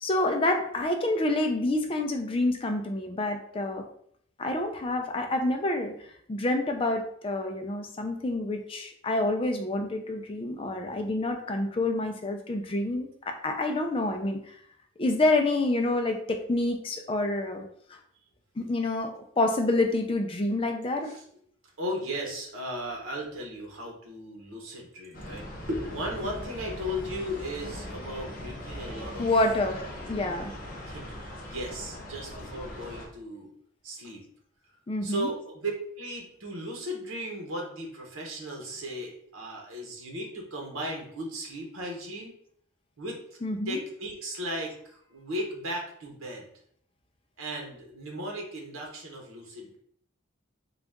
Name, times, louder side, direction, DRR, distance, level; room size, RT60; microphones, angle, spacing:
voice 1, 0.0-3.9 4.4-14.6 15.0-17.6 17.9-18.0 18.6-21.1 29.2-30.5 34.9-35.3 43.4-43.8, left 2 dB, 25° left, 4 dB, 0.4 m, -28 dB
voice 2, 21.8-29.3 30.8-33.5 33.8-34.2 35.0-42.3 43.0-43.2 43.7-46.5 47.4-49.8, equal, 90° right, 0 dB, 1.0 m, -36 dB
sound 1, 25.1-33.1, left 1 dB, 45° left, 0.8 m, -40 dB
3.9 x 2.4 x 3.5 m, 0.66 s
head